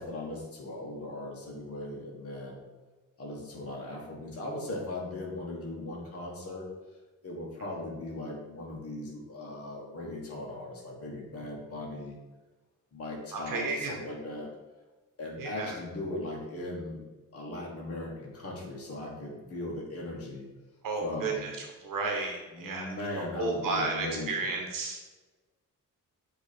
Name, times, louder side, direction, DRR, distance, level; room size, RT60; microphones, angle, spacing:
voice 1, 0.0-2.6 3.2-6.7 7.2-12.2 12.9-14.5 15.2-17.0 17.3-20.5 21.0-21.5 22.5-24.5, left 1 dB, 45° left, -2 dB, 1.4 m, -38 dB
voice 2, 13.3-14.0 15.4-15.7 20.8-21.5 21.8-22.9 23.4-25.0, right 3 dB, 75° right, 2 dB, 0.9 m, -32 dB
8.0 x 3.2 x 4.2 m, 1.2 s
wide cardioid pair, 165°, 33 cm